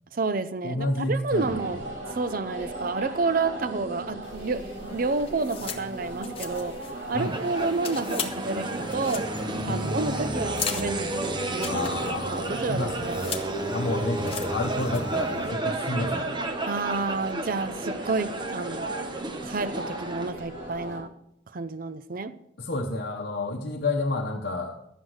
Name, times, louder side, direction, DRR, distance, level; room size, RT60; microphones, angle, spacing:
voice 1, 0.1-1.8 2.1-6.8 7.1-9.3 9.7-12.0 12.3-13.3 16.7-18.9 19.4-21.1 21.5-22.3, right 3 dB, 50° right, 12 dB, 0.5 m, -30 dB
voice 2, 0.6-1.7 7.1-7.3 9.6-9.9 11.7-13.2 13.7-16.3 22.6-24.7, left 2 dB, 55° left, 1 dB, 0.9 m, -30 dB
sound 1, 1.3-21.0, right 1 dB, 80° right, 4.3 m, -38 dB
sound 2, 4.2-15.5, left 7 dB, 30° left, 1.1 m, -40 dB
sound 3, 7.2-20.3, right 2 dB, 25° right, 0.9 m, -32 dB
12.0 x 8.1 x 6.3 m, 0.77 s
head